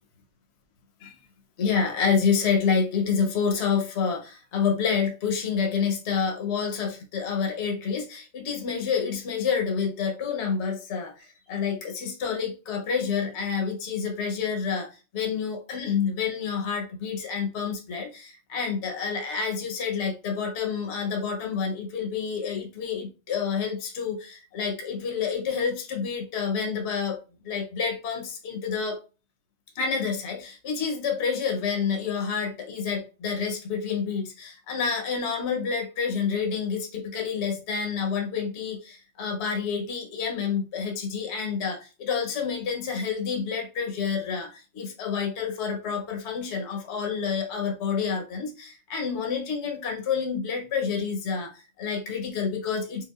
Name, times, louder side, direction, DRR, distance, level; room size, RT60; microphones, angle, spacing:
voice 1, 1.6-14.9 15.1-29.0 29.8-53.0, left 6 dB, 55° left, 2 dB, 1.1 m, -28 dB
4.8 x 2.3 x 2.4 m, 0.32 s
omnidirectional pair, 1.4 m